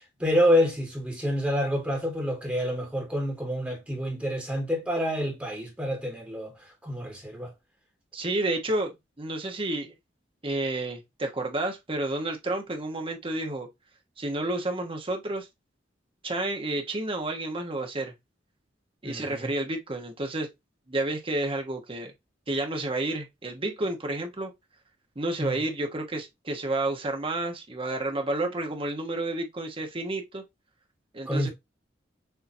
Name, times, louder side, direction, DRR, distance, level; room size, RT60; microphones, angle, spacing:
voice 1, 0.2-6.5 6.8-7.5 19.0-19.5 25.4-25.6 31.2-31.5, equal, 5° right, 1.5 m, -27 dB
voice 2, 8.1-8.9 9.2-9.9 10.4-13.7 14.2-15.5 16.2-18.1 19.0-20.5 20.9-22.1 22.5-24.5 25.2-30.4 31.1-31.5, right 2 dB, 30° right, 1.1 m, -30 dB
6.8 x 2.8 x 2.6 m
head